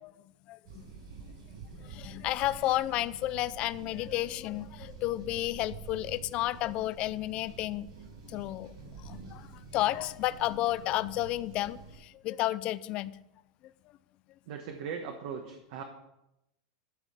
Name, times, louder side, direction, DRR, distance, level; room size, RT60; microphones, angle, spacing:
voice 1, 0.5-0.9 1.9-7.9 8.3-8.7 9.1-9.5 9.7-13.2, left 15 dB, 30° left, 0.4 m, -32 dB
sound 1, 0.6-12.0, right 5 dB, 70° right, 5.6 m, -48 dB
voice 2, 14.5-15.8, right 6 dB, 50° right, 1.3 m, -39 dB
13.0 x 5.6 x 8.0 m
supercardioid pair, 175°, 4 cm